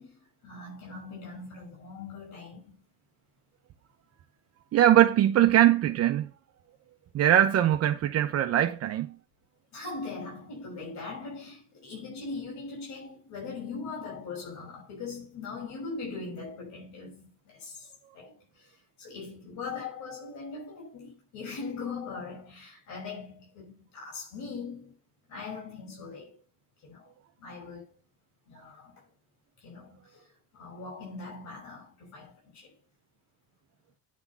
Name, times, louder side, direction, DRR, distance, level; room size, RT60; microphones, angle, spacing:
voice 1, 0.0-2.8 9.7-17.9 18.1-18.7 19.0-25.0 25.3-26.4 26.8-27.1 27.4-27.9 28.5-29.0 29.6-30.1 30.5-32.7, left 4 dB, 65° left, 5.9 m, -40 dB
voice 2, 4.7-6.3 7.1-9.2, right 12 dB, 55° right, 0.9 m, -21 dB
9.5 x 3.9 x 7.2 m
cardioid pair, 110°, 30 cm